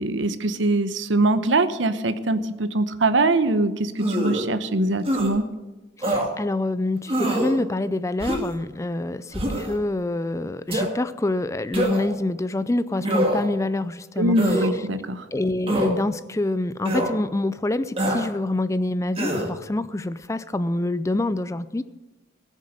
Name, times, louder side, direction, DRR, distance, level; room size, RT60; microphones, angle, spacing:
voice 1, 0.0-5.4 14.2-15.2, right 2 dB, 80° right, 11 dB, 0.9 m, -22 dB
sound 1, 4.0-4.5 5.0-5.3 6.0-6.3 7.1-7.5 8.2-8.6 9.3-9.7 10.7-10.9 11.7-12.1 13.0-13.5 14.4-14.7 15.7-15.9 16.9-17.1 18.0-18.3 19.2-19.5, right 1 dB, 30° right, 2.0 m, -24 dB
voice 2, 6.0-14.8 15.3-21.8, left 2 dB, 15° left, 14 dB, 0.4 m, -26 dB
18.0 x 7.4 x 6.6 m, 1.1 s
head